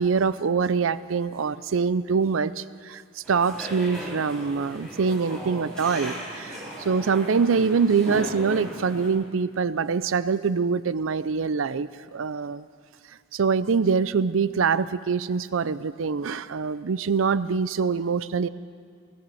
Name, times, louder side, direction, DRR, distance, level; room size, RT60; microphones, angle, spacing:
voice 1, 0.0-12.6 13.3-18.5, right 5 dB, 70° right, 16 dB, 0.5 m, -24 dB
sound 1, 3.2-9.1, equal, 5° left, 5.7 m, -37 dB
20.0 x 17.0 x 7.8 m, 2.1 s
head